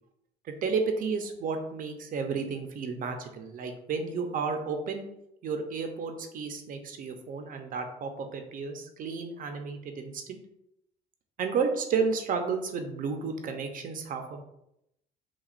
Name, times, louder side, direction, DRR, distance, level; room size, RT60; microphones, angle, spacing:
voice 1, 0.5-5.1 5.4-10.4 11.4-14.4, right 5 dB, 55° right, 5 dB, 0.7 m, -32 dB
6.0 x 2.4 x 2.5 m, 0.80 s
cardioid pair, 110°, 17 cm